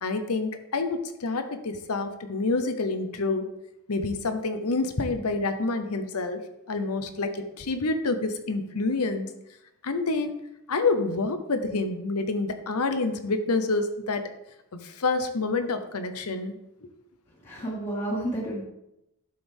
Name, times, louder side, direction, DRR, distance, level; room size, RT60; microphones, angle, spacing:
voice 1, 0.0-3.5 3.9-6.4 6.7-9.3 9.8-10.4 10.7-14.3 14.7-16.6 16.8-16.9, left 3 dB, 85° left, 8 dB, 0.9 m, -28 dB
voice 2, 17.4-18.6, right 1 dB, 30° left, -7 dB, 1.9 m, -31 dB
11.5 x 6.3 x 3.5 m, 0.85 s
head